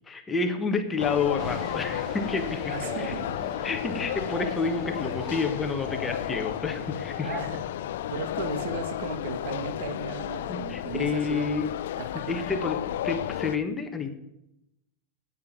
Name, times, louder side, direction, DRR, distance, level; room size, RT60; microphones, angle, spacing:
voice 1, 0.1-3.1 3.6-7.4 10.5-11.7 12.3-14.1, left 4 dB, 10° left, 5 dB, 1.4 m, -29 dB
sound 1, 1.0-13.6, left 12 dB, 85° left, 0.6 m, -33 dB
sound 2, 1.4-8.7, right 4 dB, 20° right, 1.0 m, -43 dB
voice 2, 2.7-3.3 7.2-7.6 8.1-11.5 12.0-12.5, right 5 dB, 75° right, 9 dB, 2.1 m, -36 dB
9.9 x 9.3 x 9.3 m, 0.85 s
supercardioid pair, 160°, 0 cm